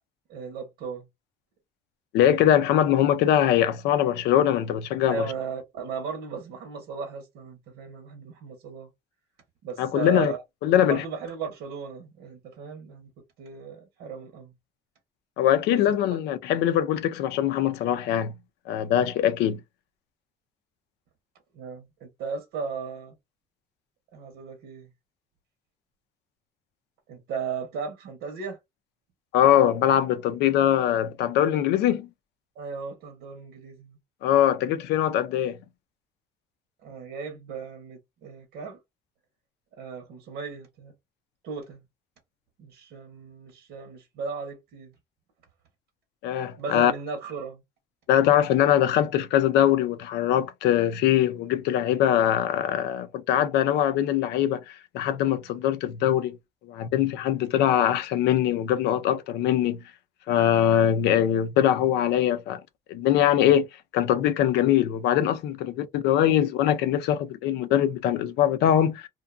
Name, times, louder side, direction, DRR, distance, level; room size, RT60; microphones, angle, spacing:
voice 1, 0.3-1.1 5.1-8.9 9.6-10.4 10.8-13.1 13.4-14.5 15.7-15.8 21.5-23.1 24.1-24.9 27.1-28.6 32.6-34.0 36.8-38.8 39.8-40.9 41.4-41.8 42.6-44.9 46.6-47.6, right 5 dB, 85° right, 0.9 m, -36 dB
voice 2, 2.1-5.2 9.8-10.3 10.6-11.0 15.4-18.3 18.7-19.6 29.3-32.1 34.2-35.6 46.2-46.9 48.1-56.4 56.6-59.8 60.3-62.6 62.9-63.7 63.9-69.1, left 11 dB, 80° left, 0.5 m, -22 dB
2.6 x 2.2 x 2.4 m
cardioid pair, 110°, 17 cm